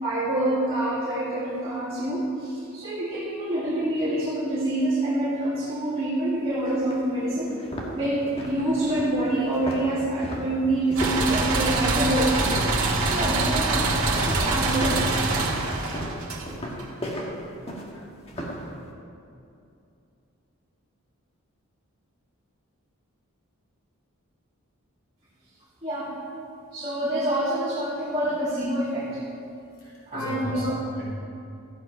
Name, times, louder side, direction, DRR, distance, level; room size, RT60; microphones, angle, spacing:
voice 1, 0.0-7.6 7.9-12.4 13.0-15.0 25.8-26.1 26.7-29.2 30.1-30.8, right 1 dB, 25° right, -10 dB, 2.2 m, -26 dB
sound 1, 6.3-6.4 6.9-7.0 7.5-13.0 13.3-13.7 14.3-18.7, equal, 25° left, 1.5 m, -35 dB
sound 2, 11.0-16.8, right 3 dB, 75° right, 1.7 m, -24 dB
voice 2, 29.8-31.1, equal, 60° left, -7 dB, 2.9 m, -36 dB
14.0 x 8.1 x 5.2 m, 2.6 s
head